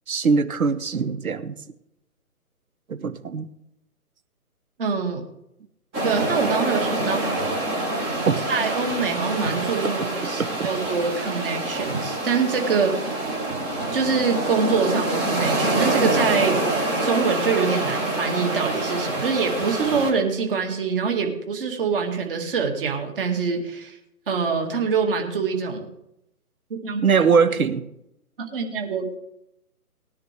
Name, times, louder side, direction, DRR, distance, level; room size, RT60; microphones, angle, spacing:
voice 1, 0.1-1.6 2.9-3.5 8.2-8.4 10.2-10.7 27.0-27.9, right 5 dB, 65° right, 12 dB, 1.2 m, -22 dB
voice 2, 4.8-5.2 6.0-7.5 8.5-13.2 13.9-16.7 17.0-24.0 24.3-25.9 26.7-27.0 28.4-29.1, right 5 dB, 35° right, 3 dB, 2.3 m, -25 dB
sound 1, 5.9-20.1, right 2 dB, 10° right, 1.0 m, -26 dB
19.0 x 10.5 x 3.5 m, 0.81 s
figure-of-eight pair, 140°, 45 cm